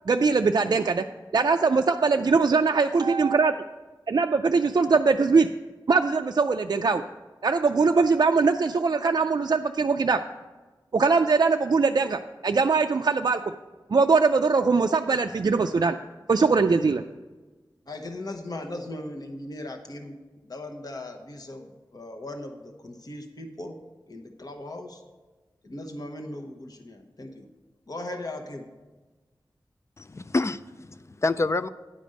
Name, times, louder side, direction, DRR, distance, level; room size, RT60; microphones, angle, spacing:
voice 1, 0.1-1.0 1.3-3.6 4.1-5.5 5.9-7.0 7.4-10.2 10.9-13.5 13.9-16.0 16.3-17.0, right 4 dB, 55° right, 5 dB, 0.3 m, -21 dB
voice 2, 17.9-20.2 20.4-23.8 24.1-25.0 25.6-27.5 27.9-28.7, left 1 dB, 55° left, 4 dB, 1.0 m, -38 dB
voice 3, 30.0-31.7, left 3 dB, 35° left, 12 dB, 0.3 m, -27 dB
10.0 x 5.1 x 6.4 m, 1.3 s
wide cardioid pair, 75°, 8 cm